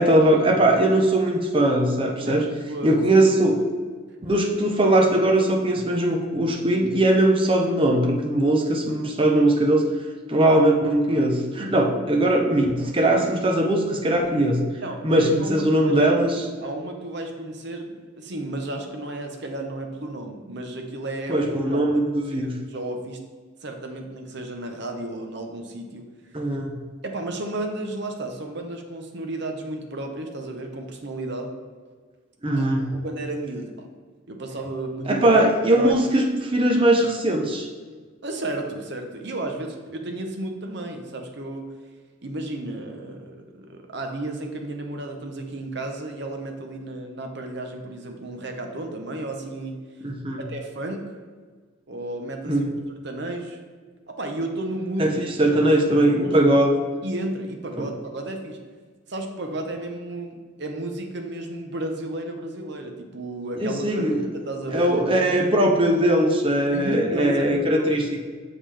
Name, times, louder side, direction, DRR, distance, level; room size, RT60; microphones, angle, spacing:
voice 1, 0.0-2.4 2.8-3.6 4.2-9.8 10.3-14.6 15.0-16.5 21.3-22.6 26.3-26.8 32.4-33.0 35.1-37.7 50.0-50.4 52.4-52.7 55.0-56.8 57.8-57.9 63.6-64.2 64.7-68.0, right 1 dB, 25° right, 1 dB, 0.7 m, -20 dB
voice 2, 2.2-3.3 14.8-23.2 23.6-26.0 27.0-31.5 32.6-32.7 33.0-33.9 34.3-35.3 35.8-36.0 38.2-41.7 42.2-49.8 50.5-51.1 51.9-52.7 53.0-53.6 54.1-55.1 55.5-55.9 56.1-56.3 57.0-58.6 59.1-65.3 66.7-68.0, right 1 dB, 55° right, 3 dB, 0.8 m, -33 dB
6.8 x 5.6 x 3.4 m, 1.5 s
head